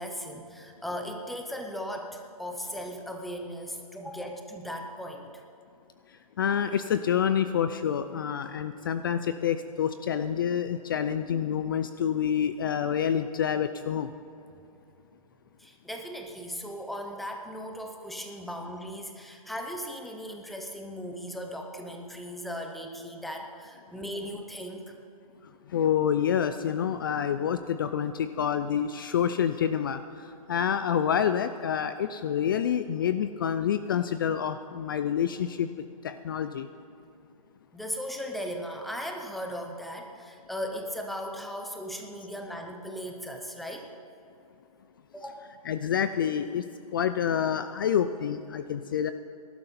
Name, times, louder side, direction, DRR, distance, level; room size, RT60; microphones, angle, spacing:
voice 1, 0.0-5.4 15.6-24.9 37.7-43.9 45.1-45.4, equal, ahead, 3 dB, 0.6 m, -37 dB
voice 2, 6.1-14.1 25.7-35.7 36.0-36.7 45.7-46.6 46.9-49.1, left 8 dB, 35° left, 11 dB, 0.3 m, -28 dB
18.5 x 12.0 x 4.2 m, 2.8 s
hypercardioid pair, 160°, 19 cm